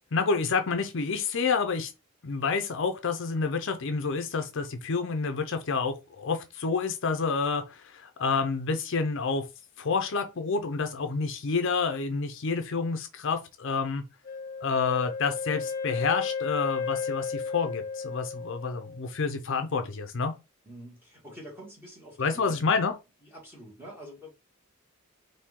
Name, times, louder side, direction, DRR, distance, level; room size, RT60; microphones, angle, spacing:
voice 1, 0.1-1.9 2.2-9.4 9.8-14.0 14.6-20.3 22.2-22.9, left 4 dB, 60° left, 0.6 m, -29 dB
Wind instrument woodwind instrument, 14.2-19.1, left 5 dB, 35° left, 0.9 m, -34 dB
voice 2, 20.6-22.6 23.2-24.3, equal, 10° right, 1.8 m, -46 dB
4.3 x 2.7 x 3.7 m
head